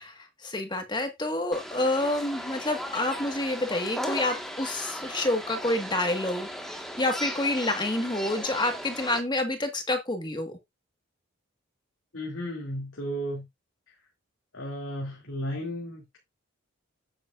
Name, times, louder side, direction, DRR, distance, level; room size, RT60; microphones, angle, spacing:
voice 1, 0.0-6.5 7.0-10.6, left 2 dB, 20° left, 1.6 m, -28 dB
sound 1, 1.5-9.2, equal, ahead, 1.5 m, -37 dB
voice 2, 12.1-13.4 14.5-16.2, equal, 80° left, 2.5 m, -34 dB
9.1 x 8.5 x 2.5 m
head